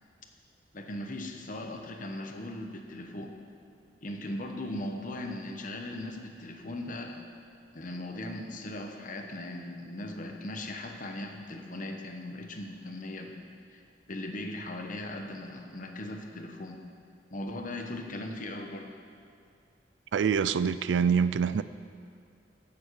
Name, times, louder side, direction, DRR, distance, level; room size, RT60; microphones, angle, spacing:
voice 1, 0.7-3.3 4.0-7.2 7.7-13.3 13.7-13.8 14.1-16.8 17.3-18.9, left 1 dB, 50° left, 3 dB, 1.1 m, -38 dB
voice 2, 20.1-21.6, right 6 dB, 85° right, 15 dB, 0.4 m, -25 dB
15.5 x 7.2 x 4.8 m, 2.3 s
head